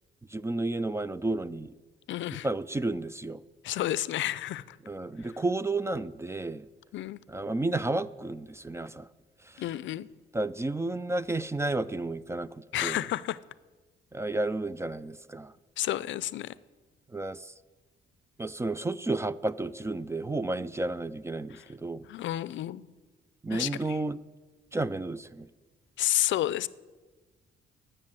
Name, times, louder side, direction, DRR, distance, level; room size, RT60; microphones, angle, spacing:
voice 1, 0.3-1.7 2.4-3.4 4.9-6.7 7.3-9.1 10.3-13.1 14.1-15.5 17.1-17.5 18.4-22.1 23.4-24.2 24.7-25.5, right 2 dB, 15° right, 17 dB, 0.4 m, -32 dB
voice 2, 2.1-2.5 3.6-4.8 6.9-7.2 9.6-10.1 12.7-13.4 15.8-16.5 21.5-21.7 22.1-22.9 23.5-24.0 26.0-26.7, left 14 dB, 70° left, 19 dB, 0.5 m, -30 dB
13.5 x 6.6 x 9.1 m, 1.3 s
cardioid pair, 90°, 20 cm